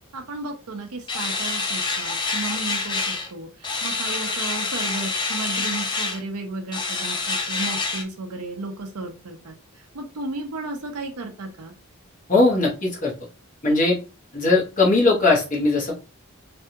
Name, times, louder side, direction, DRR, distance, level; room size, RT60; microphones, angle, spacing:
voice 1, 0.1-11.7, right 2 dB, 85° right, 4 dB, 0.6 m, -34 dB
sound 1, 1.1-3.3 3.6-6.2 6.7-8.0, left 3 dB, 20° left, 0.4 m, -27 dB
voice 2, 12.3-13.1 13.6-14.0 14.3-15.9, left 3 dB, 35° left, -2 dB, 1.0 m, -19 dB
3.3 x 2.3 x 2.8 m, 0.31 s
head